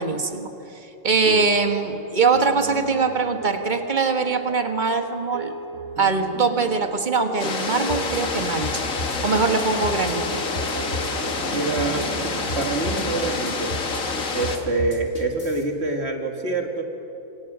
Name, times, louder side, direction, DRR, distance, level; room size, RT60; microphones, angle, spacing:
voice 1, 0.0-5.5 6.0-8.9 9.2-10.4, right 4 dB, 35° right, 6 dB, 1.6 m, -22 dB
sound 1, 1.6-13.8, right 5 dB, 75° right, 1.4 m, -37 dB
sound 2, 7.4-14.6, left 4 dB, 85° left, 2.0 m, -28 dB
sound 3, 7.9-15.6, left 2 dB, 45° left, 3.1 m, -33 dB
voice 2, 11.5-12.1 12.5-13.8 14.3-16.8, right 3 dB, 55° right, 3 dB, 2.4 m, -26 dB
27.5 x 25.0 x 6.2 m, 3.0 s
omnidirectional pair, 1.4 m